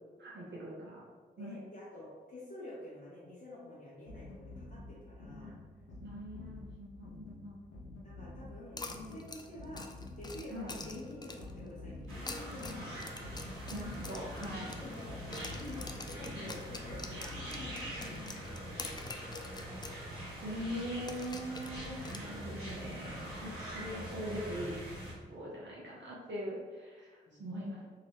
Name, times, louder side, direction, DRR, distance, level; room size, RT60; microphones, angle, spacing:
voice 1, 0.2-1.0 1.4-1.7 5.4-5.5 6.0-7.6 10.5-10.7 13.7-14.8 20.4-24.7 25.3-27.9, equal, 60° right, -6 dB, 0.8 m, -42 dB
voice 2, 1.4-5.5 8.0-9.8 10.2-13.1 14.8-15.2 15.6-19.5 22.2-22.6 27.3-27.7, left 1 dB, 40° left, -8 dB, 0.9 m, -49 dB
sound 1, 4.1-18.7, left 2 dB, 80° left, 0.7 m, -48 dB
sound 2, 8.8-11.6 12.1-15.1 15.3-20.0 20.3-20.4 21.1-22.7, left 3 dB, 20° left, 0.4 m, -46 dB
sound 3, 12.1-25.1, right 1 dB, 85° right, 1.4 m, -44 dB
2.9 x 2.8 x 3.0 m, 1.4 s
supercardioid pair, 40°, 21 cm